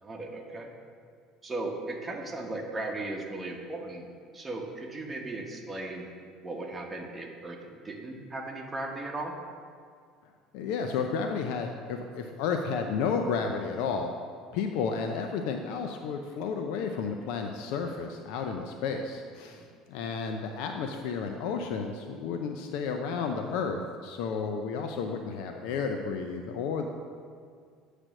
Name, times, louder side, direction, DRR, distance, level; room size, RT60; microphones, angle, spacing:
voice 1, 0.0-0.7 1.4-4.1 4.3-6.0 6.4-9.3 19.4-19.7, right 2 dB, 20° right, 0 dB, 1.1 m, -37 dB
voice 2, 10.5-14.1 14.5-26.9, left 5 dB, 75° left, 4 dB, 0.4 m, -32 dB
8.7 x 3.3 x 6.2 m, 2.1 s
supercardioid pair, 90°, 0 cm